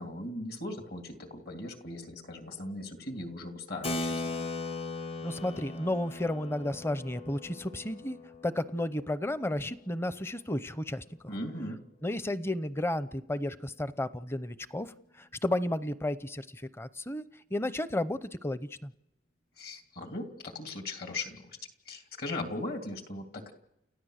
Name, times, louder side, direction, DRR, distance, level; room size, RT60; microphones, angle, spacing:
voice 1, 0.0-4.3 11.3-11.8 19.6-21.6 21.9-23.5, left 2 dB, 55° left, 4 dB, 2.9 m, -39 dB
Keyboard (musical), 3.8-9.9, left 2 dB, 30° left, 0.9 m, -38 dB
voice 2, 5.2-8.2 8.4-11.3 12.0-17.2 17.5-18.9, left 1 dB, 15° left, 14 dB, 0.7 m, -33 dB
30.0 x 14.0 x 6.5 m, 0.87 s
head